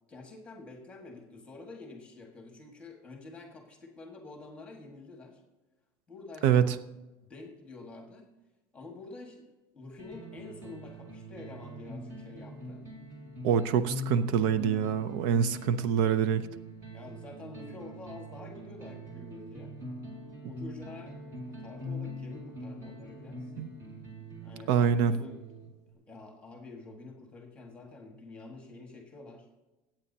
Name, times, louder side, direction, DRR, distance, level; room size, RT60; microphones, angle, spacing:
voice 1, 0.1-5.4 6.1-6.7 7.2-8.3 8.7-9.5 9.7-12.9 16.9-19.8 20.4-21.1 21.5-23.5 24.4-24.8 25.1-25.5 25.9-29.5, left 3 dB, 10° left, 2 dB, 1.6 m, -47 dB
voice 2, 6.4-6.7 13.4-16.5 23.6-23.7 24.7-25.1, right 8 dB, 65° right, 13 dB, 0.6 m, -25 dB
sound 1, 10.0-25.9, left 1 dB, 30° right, 2.1 m, -43 dB
21.5 x 8.9 x 2.8 m, 1.1 s
cardioid pair, 175°, 11 cm